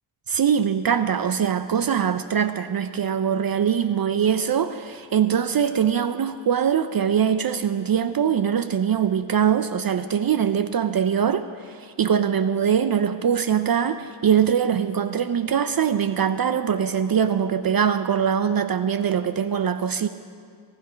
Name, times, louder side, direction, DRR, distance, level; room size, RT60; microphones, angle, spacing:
voice 1, 0.3-20.1, right 8 dB, 50° right, 11 dB, 0.6 m, -22 dB
23.5 x 9.8 x 5.1 m, 2.2 s
cardioid pair, 55°, 46 cm